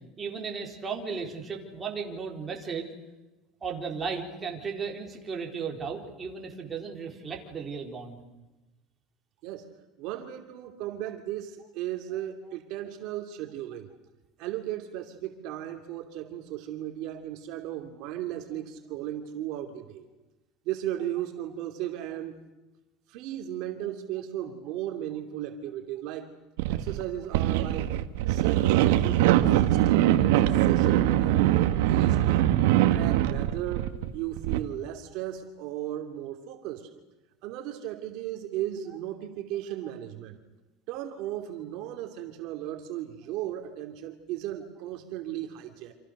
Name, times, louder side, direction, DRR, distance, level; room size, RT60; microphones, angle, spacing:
voice 1, 0.2-2.9 3.6-8.2, right 5 dB, 20° right, 0 dB, 4.3 m, -35 dB
voice 2, 10.0-13.9 14.4-20.0 20.6-22.4 23.1-26.3 26.7-27.9 28.3-32.4 32.9-33.9 34.1-36.9 37.4-40.4 40.9-45.9, right 12 dB, 60° right, 4 dB, 2.7 m, -36 dB
sound 1, 26.6-27.0 27.3-34.6, right 13 dB, 90° right, 1.5 m, -22 dB
28.5 x 27.5 x 6.7 m, 1.1 s
cardioid pair, 155°, 0 cm